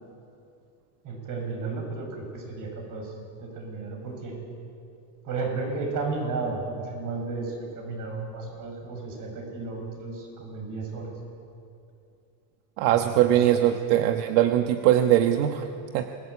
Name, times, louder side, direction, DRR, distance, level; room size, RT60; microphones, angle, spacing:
voice 1, 1.0-3.1 3.4-4.3 5.2-11.1 12.9-13.7, right 3 dB, 40° right, 2 dB, 7.8 m, -33 dB
voice 2, 12.8-16.1, right 12 dB, 70° right, 6 dB, 1.5 m, -21 dB
27.5 x 21.0 x 8.6 m, 2.6 s
supercardioid pair, 145°, 48 cm